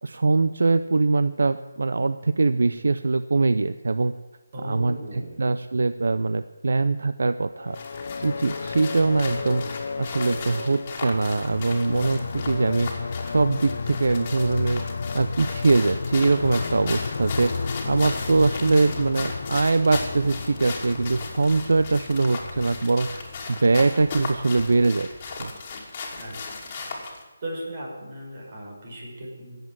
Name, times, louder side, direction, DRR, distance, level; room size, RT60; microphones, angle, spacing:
voice 1, 0.0-4.1 4.6-7.8 8.2-12.9 13.3-14.8 15.1-25.1 25.4-25.5, right 3 dB, 70° right, 12 dB, 0.6 m, -22 dB
voice 2, 4.5-5.5 10.2-10.8 26.1-26.5 26.8-27.0 27.4-29.6, right 1 dB, 40° right, -2 dB, 5.5 m, -37 dB
sound 1, 7.6-24.4, left 4 dB, 55° left, 0.5 m, -33 dB
sound 2, 7.7-27.2, left 4 dB, 25° left, 2.6 m, -37 dB
18.5 x 8.0 x 7.6 m, 1.2 s
figure-of-eight pair, 165°, 0 cm